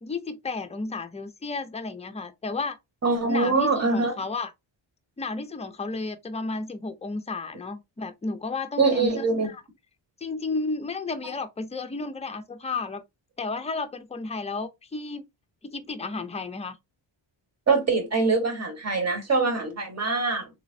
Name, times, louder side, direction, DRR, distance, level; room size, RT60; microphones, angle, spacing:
voice 1, 0.0-2.8 3.3-4.5 5.2-9.6 10.2-13.0 13.4-15.2 15.6-16.8, left 3 dB, 15° left, 0.4 m, -32 dB
voice 2, 3.0-4.1 8.8-9.5 17.7-20.5, right 4 dB, 35° right, 1.2 m, -23 dB
3.3 x 3.0 x 2.6 m
wide cardioid pair, 120°, 46 cm